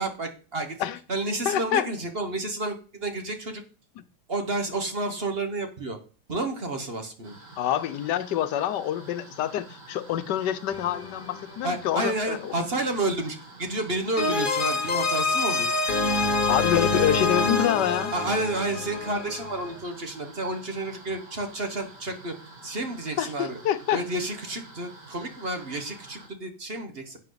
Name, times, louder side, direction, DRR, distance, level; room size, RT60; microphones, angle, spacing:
voice 1, 0.0-0.8 1.1-3.6 4.3-6.0 6.3-7.4 11.6-15.7 18.1-22.3 22.6-23.6 23.9-27.2, right 2 dB, 35° right, 1.5 m, -30 dB
voice 2, 1.4-1.9 4.0-4.1 7.6-12.7 16.5-18.1 23.2-24.0, left 11 dB, 85° left, 1.3 m, -26 dB
sound 1, 7.2-26.3, right 2 dB, 80° right, 3.6 m, -48 dB
sound 2, 10.7-11.7 14.2-19.8, left 3 dB, 35° left, 1.0 m, -26 dB
10.5 x 8.4 x 4.0 m
omnidirectional pair, 1.8 m